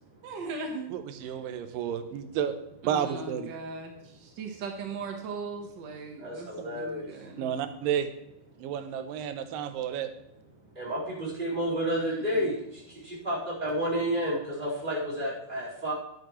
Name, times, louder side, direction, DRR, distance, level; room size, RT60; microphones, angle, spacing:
voice 1, 0.2-0.9 2.8-7.5 11.9-12.7, right 3 dB, 75° right, 3 dB, 1.0 m, -39 dB
voice 2, 0.9-2.5 2.8-3.5 6.6-6.7 7.4-8.1 8.6-10.1, right 9 dB, 90° right, 9 dB, 2.4 m, -31 dB
voice 3, 6.2-7.1 10.7-15.9, equal, 15° right, -8 dB, 4.3 m, -31 dB
11.5 x 9.4 x 3.1 m, 0.78 s
omnidirectional pair, 3.8 m